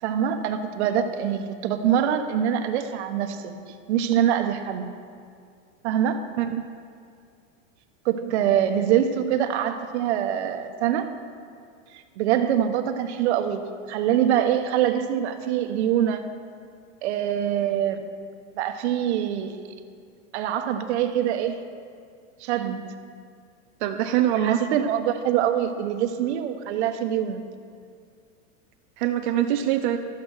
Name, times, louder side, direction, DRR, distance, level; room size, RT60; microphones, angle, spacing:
voice 1, 0.0-3.5 3.9-4.8 5.8-6.2 8.0-11.1 11.9-16.3 17.0-18.0 18.5-19.6 20.3-21.6 22.4-22.9 24.4-27.4, right 10 dB, 55° right, 7 dB, 1.1 m, -24 dB
voice 2, 23.8-24.6 29.0-30.0, right 11 dB, 40° right, 4 dB, 0.4 m, -24 dB
12.5 x 8.5 x 6.3 m, 2.2 s
supercardioid pair, 165°, 40 cm